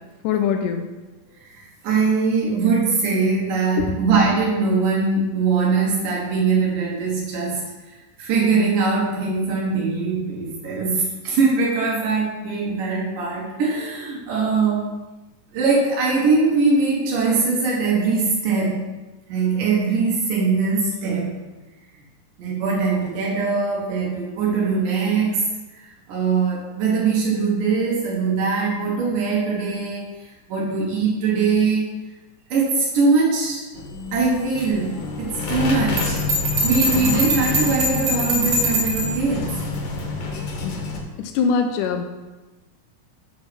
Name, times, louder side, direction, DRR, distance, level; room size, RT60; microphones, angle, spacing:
voice 1, 0.2-0.8 3.8-4.0 40.6-40.8 41.2-42.0, left 6 dB, 85° left, 5 dB, 2.2 m, -22 dB
voice 2, 1.6-7.6 8.2-15.0 15.5-18.9 19.3-21.4 22.4-25.5 26.1-30.1 30.5-32.0 32.5-33.7 34.1-36.2 36.6-39.5, right 4 dB, 85° right, -3 dB, 2.9 m, -21 dB
sound 1, 33.7-41.0, left 3 dB, 60° left, 2.1 m, -28 dB
Bell, 36.0-39.2, right 1 dB, 55° right, 3.2 m, -23 dB
7.3 x 5.0 x 6.1 m, 1.1 s
omnidirectional pair, 3.7 m